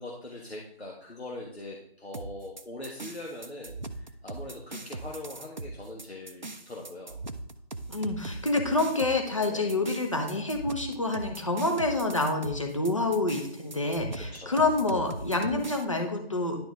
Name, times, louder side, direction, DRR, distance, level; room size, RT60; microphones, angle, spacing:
voice 1, 0.0-7.2 9.5-9.6 14.2-14.6, left 2 dB, 85° left, -2 dB, 1.6 m, -42 dB
sound 1, 2.1-15.8, right 2 dB, 45° right, 0.5 m, -40 dB
voice 2, 7.9-16.6, left 2 dB, 30° left, 3 dB, 0.8 m, -27 dB
10.5 x 4.6 x 3.4 m, 0.71 s
figure-of-eight pair, 165°, 31 cm